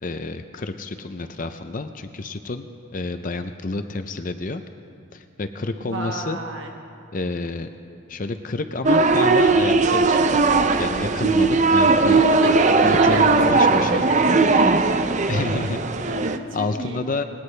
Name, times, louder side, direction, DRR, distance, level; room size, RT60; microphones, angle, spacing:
voice 1, 0.0-4.6 5.1-6.4 7.1-7.7 8.1-10.4 10.8-12.3 12.8-14.1 15.3-15.8 16.5-17.2, left 3 dB, 40° left, 8 dB, 0.5 m, -29 dB
voice 2, 5.8-6.7 12.2-13.2 14.3-14.5 16.0-17.1, right 2 dB, 60° right, 2 dB, 1.3 m, -30 dB
sound 1, 8.8-16.4, right 3 dB, 35° right, 0.5 m, -18 dB
20.5 x 17.5 x 3.3 m, 2.5 s
head